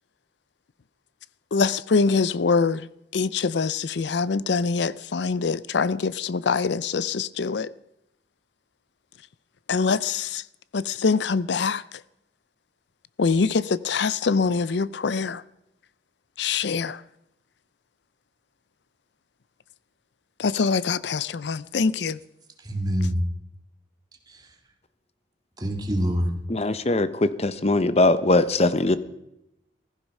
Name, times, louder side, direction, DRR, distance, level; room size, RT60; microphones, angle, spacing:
voice 1, 1.5-2.9 3.1-7.7 9.7-10.4 10.7-11.8 13.2-15.4 16.4-17.0 20.4-22.2, left 4 dB, 65° left, 0.5 m, -24 dB
voice 2, 22.6-23.2 24.3-24.5 25.6-26.4, equal, 20° right, 2.1 m, -26 dB
voice 3, 26.5-29.0, left 2 dB, 35° left, 0.8 m, -21 dB
15.5 x 15.0 x 5.4 m
head